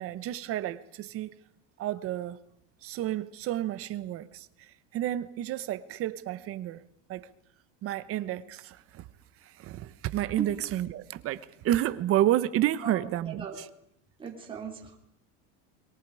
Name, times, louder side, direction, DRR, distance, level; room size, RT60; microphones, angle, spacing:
voice 1, 0.0-1.3 1.8-2.4 2.8-6.8 7.1-7.3 7.8-9.0 9.4-13.4, right 13 dB, 40° right, 1.2 m, -30 dB
voice 2, 12.8-13.6 14.2-15.0, right 6 dB, 15° right, 3.7 m, -38 dB
28.5 x 23.0 x 4.9 m
cardioid pair, 155°, 35 cm